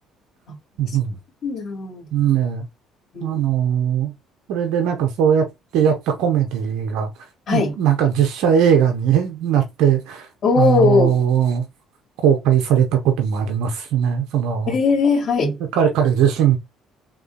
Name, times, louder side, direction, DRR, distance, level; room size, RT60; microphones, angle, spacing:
voice 1, 0.8-1.2 2.1-2.6 3.2-4.1 4.5-5.5 5.7-7.1 7.5-10.3 10.6-11.6 12.2-14.7 15.7-16.6, right 8 dB, 70° right, 0.8 m, -19 dB
voice 2, 1.4-2.0 3.1-3.4 7.5-7.7 10.4-11.2 14.7-15.6, left 4 dB, 50° left, 2.4 m, -19 dB
3.7 x 3.6 x 2.3 m
hypercardioid pair, 55°, 0 cm